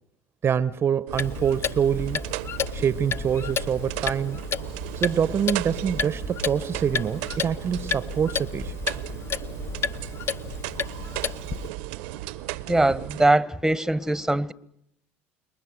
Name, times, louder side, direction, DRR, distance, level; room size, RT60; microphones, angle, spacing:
voice 1, 0.4-2.2 2.7-4.4 5.0-8.7, right 8 dB, 40° right, 0.9 m, -25 dB
Clock, 1.1-11.7, left 6 dB, 40° left, 0.9 m, -32 dB
sound 1, 1.1-13.3, right 17 dB, 75° right, 0.9 m, -36 dB
voice 2, 12.7-14.5, right 2 dB, 5° right, 1.3 m, -21 dB
27.0 x 23.0 x 6.5 m
hypercardioid pair, 75°, 6 cm